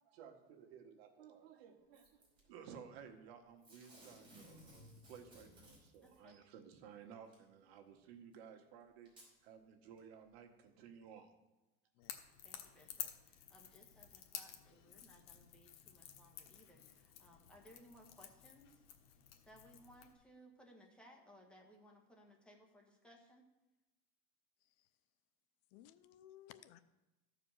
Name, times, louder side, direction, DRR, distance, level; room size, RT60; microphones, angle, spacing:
voice 1, 0.0-9.1 9.4-11.3, right 7 dB, 85° right, 5 dB, 1.5 m, -56 dB
Packing tape duct tape / Tearing, 1.9-2.4 3.6-6.2 7.3-7.4 8.3-8.4 9.1-9.3 10.0-10.1, equal, 15° right, 4.3 m, -60 dB
voice 2, 6.0-6.4 12.4-18.8 19.4-23.5, equal, 5° left, 0 dB, 1.5 m, -63 dB
Crackle / Crack, 12.0-20.1, left 10 dB, 80° left, 1.3 m, -52 dB
voice 3, 25.7-26.8, left 12 dB, 55° left, 13 dB, 0.6 m, -59 dB
14.0 x 4.9 x 6.5 m, 1.0 s
supercardioid pair, 155°, 30 cm